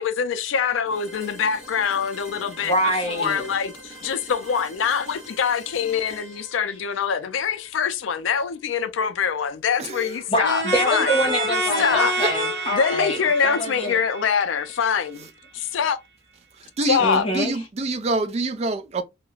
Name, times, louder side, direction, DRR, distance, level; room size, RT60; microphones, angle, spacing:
voice 1, 0.0-2.7 3.1-11.1 11.8-12.2 12.7-15.3 15.5-16.0 16.9-17.2, left 6 dB, 75° left, 0.4 m, -24 dB
sound 1, 0.9-8.7, right 1 dB, ahead, 0.9 m, -44 dB
voice 2, 2.6-3.4 10.3-14.0 17.0-17.5, equal, 30° left, 0.8 m, -25 dB
voice 3, 9.8-10.2 12.2-12.3 13.4-13.5 16.6-19.0, right 2 dB, 35° right, 0.3 m, -27 dB
sound 2, 10.4-15.0, right 1 dB, 60° right, 0.7 m, -27 dB
2.3 x 2.1 x 3.0 m
head